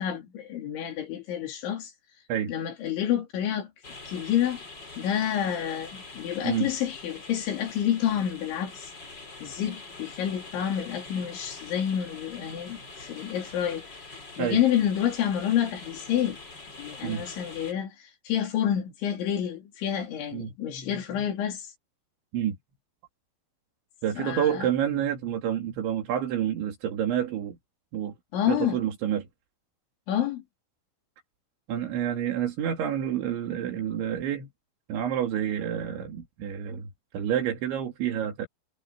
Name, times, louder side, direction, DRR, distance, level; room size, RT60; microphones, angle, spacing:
voice 1, 0.0-1.9 2.5-3.7 4.1-4.6 5.0-8.9 9.4-16.4 16.8-21.7 24.2-24.7 28.3-28.8 30.1-30.4, left 10 dB, 85° left, 5.3 m, -29 dB
sound 1, 3.8-17.7, left 3 dB, 25° left, 4.3 m, -44 dB
voice 2, 20.3-20.9 22.3-22.6 24.0-27.6 27.9-28.1 28.5-29.3 31.7-34.5 34.9-36.9 37.1-38.5, right 10 dB, 80° right, 5.0 m, -28 dB
omnidirectional pair, 5.2 m